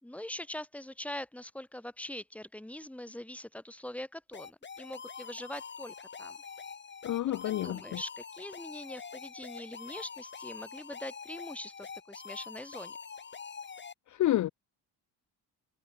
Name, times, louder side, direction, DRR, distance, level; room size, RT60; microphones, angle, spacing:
voice 1, 0.0-6.4 7.4-13.0, left 1 dB, 5° left, 3.0 m, -43 dB
sound 1, 4.3-13.9, left 6 dB, 25° left, 4.7 m, -45 dB
voice 2, 7.0-8.0 14.1-14.5, left 13 dB, 45° left, 0.7 m, -29 dB
cardioid pair, 165°, 41 cm